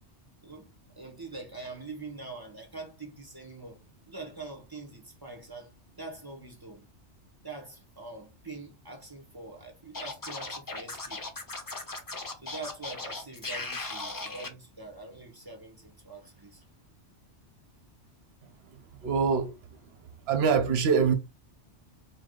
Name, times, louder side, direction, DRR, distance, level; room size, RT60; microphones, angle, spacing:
voice 1, 1.0-5.7 6.0-6.9 7.4-11.2 12.4-16.6, right 3 dB, 20° right, 1.0 m, -44 dB
Scratching (performance technique), 9.9-14.5, left 3 dB, 25° left, 0.5 m, -37 dB
voice 2, 19.0-19.5 20.3-21.1, right 6 dB, 65° right, 0.9 m, -24 dB
4.6 x 2.3 x 3.8 m
omnidirectional pair, 1.2 m